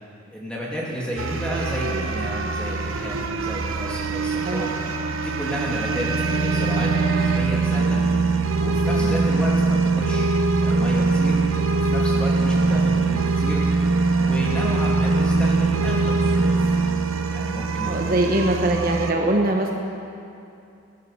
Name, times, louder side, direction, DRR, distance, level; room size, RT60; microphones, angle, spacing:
voice 1, 0.3-4.7 5.2-8.0 8.6-10.3 10.6-11.4 11.7-13.6 14.2-16.7 17.3-18.3, equal, 5° left, -5 dB, 2.8 m, -31 dB
sound 1, 1.2-19.1, right 3 dB, 80° right, 0.9 m, -22 dB
voice 2, 9.0-9.3 17.8-19.7, right 1 dB, 45° right, 1 dB, 1.0 m, -22 dB
17.0 x 11.0 x 6.7 m, 2.6 s
head